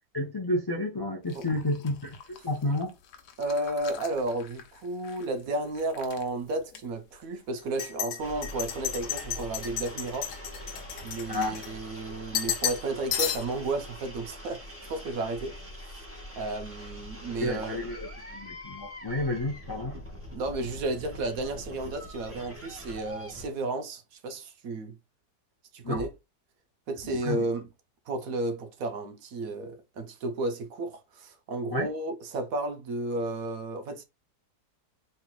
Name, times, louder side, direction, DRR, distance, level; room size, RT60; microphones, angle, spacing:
voice 1, 0.1-2.1 2.4-2.9 11.3-11.6 17.4-20.0 25.8-26.0 27.2-27.5 31.7-31.9, left 1 dB, 30° left, 0.4 m, -30 dB
sound 1, 1.3-5.3 5.6-6.2 6.7-6.8 7.6-12.0 12.3-12.9 13.1-13.7, left 9 dB, 80° left, 1.4 m, -35 dB
voice 2, 3.4-10.3 11.0-14.6 14.9-15.6 16.3-17.8 20.3-25.0 25.7-26.1 26.9-27.7 28.1-34.0, right 2 dB, 65° right, 1.1 m, -33 dB
sound 2, 8.2-23.5, equal, 10° right, 1.2 m, -43 dB
4.3 x 4.0 x 2.2 m
omnidirectional pair, 1.7 m